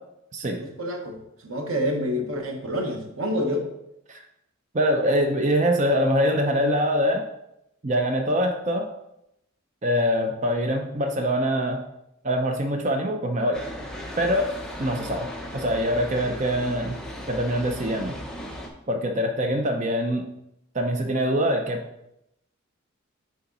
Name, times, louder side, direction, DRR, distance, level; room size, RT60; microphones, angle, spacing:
voice 1, 0.5-1.2 1.4-3.7, equal, 90° right, 3 dB, 1.2 m, -28 dB
voice 2, 4.7-7.2 7.8-8.8 9.8-11.8 12.2-13.6 14.2-14.5 14.8-15.3 15.5-17.0 17.3-18.2 18.9-20.2 20.7-21.8, equal, 35° right, 3 dB, 0.6 m, -24 dB
sound 1, 13.5-18.7, equal, 5° left, 0.9 m, -36 dB
7.0 x 5.0 x 3.9 m, 0.82 s
head